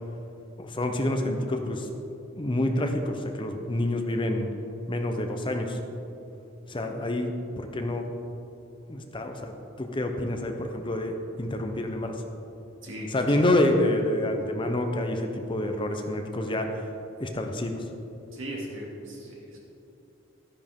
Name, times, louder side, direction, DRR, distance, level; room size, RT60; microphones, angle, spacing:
voice 1, 0.6-1.9 2.4-4.5 4.9-5.8 6.7-8.0 8.9-9.5 9.8-12.2 13.1-16.9 17.2-17.8, left 1 dB, 25° left, 4 dB, 0.8 m, -27 dB
voice 2, 12.8-13.5 18.3-19.6, right 1 dB, 90° right, -3 dB, 2.5 m, -38 dB
12.5 x 10.0 x 3.7 m, 2.9 s
head